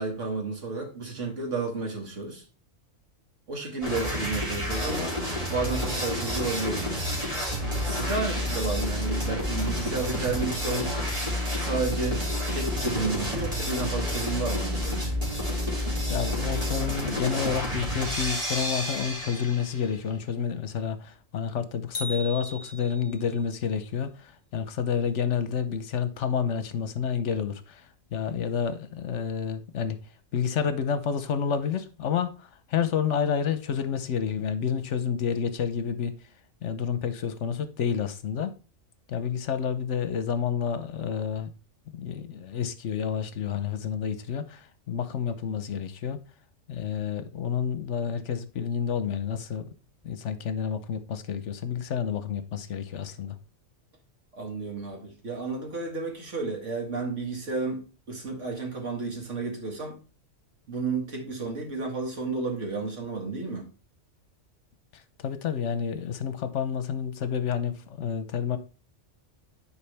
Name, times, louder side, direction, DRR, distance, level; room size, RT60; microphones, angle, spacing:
voice 1, 0.0-2.4 3.5-5.2 5.5-7.1 7.8-11.0 11.5-15.2 54.4-57.8 58.1-60.0 60.7-63.7, right 3 dB, 75° right, 2.3 m, -32 dB
sound 1, 3.8-19.8, left 1 dB, 30° right, 2.8 m, -29 dB
voice 2, 16.1-30.0 30.3-36.2 36.6-38.5 39.1-41.5 41.9-46.2 46.7-49.7 50.0-53.3 65.2-68.6, left 7 dB, 70° left, 1.1 m, -29 dB
sound 2, 21.9-23.3, equal, 45° left, 2.4 m, -37 dB
9.9 x 4.8 x 3.4 m
omnidirectional pair, 1.3 m